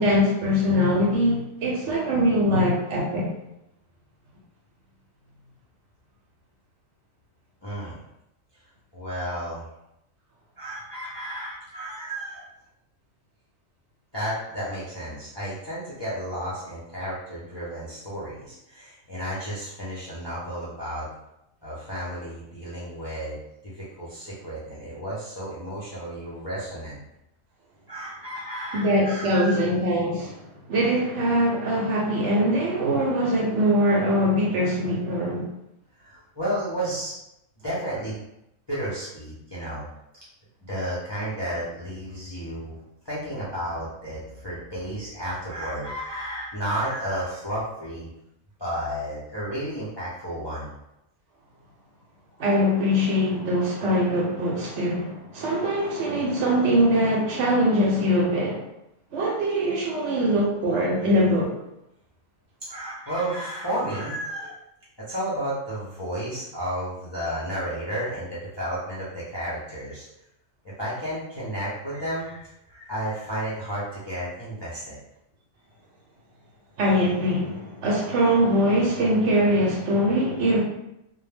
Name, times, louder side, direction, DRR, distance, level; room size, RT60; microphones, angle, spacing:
voice 1, 0.0-3.3 28.7-30.3 30.7-35.4 52.4-58.6 59.1-61.5 76.8-80.6, equal, 65° right, -2 dB, 0.9 m, -22 dB
voice 2, 7.6-8.0 8.9-9.6 10.6-12.4 14.1-21.1 21.6-23.4 23.6-27.0 27.9-29.6 36.0-37.2 37.6-38.2 38.7-39.9 40.7-42.8 43.0-48.1 48.6-50.7 53.3-53.4 62.7-64.5 65.1-70.1 70.8-75.0, right 1 dB, 40° left, -9 dB, 0.4 m, -32 dB
2.2 x 2.1 x 3.3 m, 0.86 s
omnidirectional pair, 1.4 m